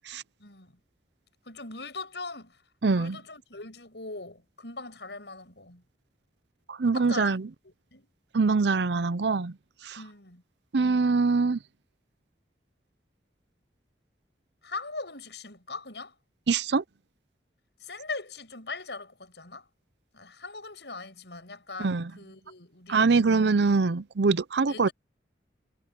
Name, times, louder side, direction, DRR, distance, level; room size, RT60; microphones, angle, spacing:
voice 1, 0.4-0.8 1.5-2.6 2.9-5.8 6.8-7.4 7.6-8.1 10.0-10.4 14.6-16.2 17.8-19.7 20.1-23.7 24.7-24.9, left 3 dB, 80° left, 7.1 m, -41 dB
voice 2, 2.8-3.2 6.7-7.5 8.3-9.6 9.8-10.0 10.7-11.6 16.5-16.8 21.8-22.1 22.9-24.9, right 4 dB, 80° right, 0.6 m, -24 dB
head